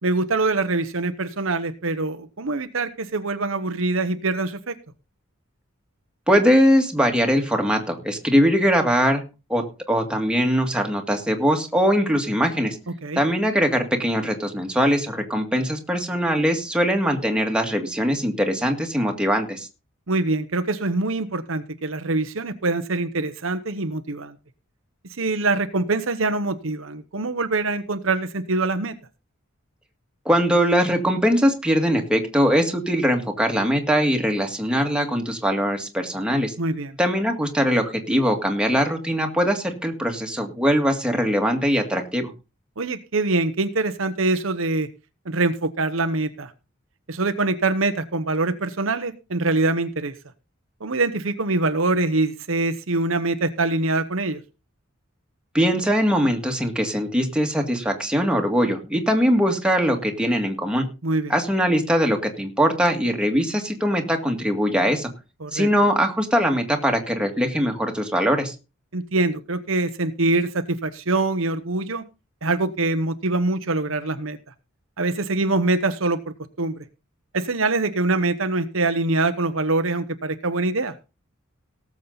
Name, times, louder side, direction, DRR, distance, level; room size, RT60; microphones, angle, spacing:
voice 1, 0.0-4.8 13.0-13.2 20.1-24.3 25.2-28.9 36.6-37.0 42.8-44.9 45.2-46.5 47.1-50.1 50.8-54.4 61.0-61.3 65.4-65.7 68.9-72.0 72.4-74.4 75.0-76.7 77.3-81.0, right 2 dB, 70° right, 10 dB, 1.0 m, -24 dB
voice 2, 6.3-9.2 9.5-12.8 13.2-19.7 30.3-36.5 37.0-42.3 55.5-60.9 61.3-65.1 65.5-68.5, equal, 5° right, 3 dB, 2.0 m, -21 dB
18.0 x 7.4 x 4.0 m, 0.30 s
head